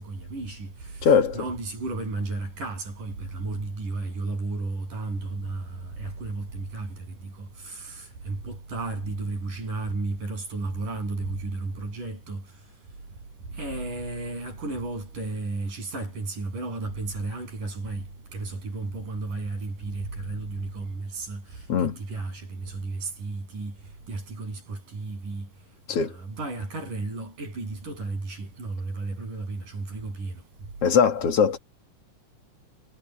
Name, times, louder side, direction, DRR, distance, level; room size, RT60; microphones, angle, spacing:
voice 1, 0.0-12.5 13.5-18.1 18.3-23.8 24.1-25.5 25.9-30.4, right 3 dB, 70° right, 9.5 m, -33 dB
voice 2, 1.0-1.4 21.7-21.9 25.9-26.1 30.8-31.6, left 6 dB, 50° left, 2.7 m, -20 dB
omnidirectional pair, 3.8 m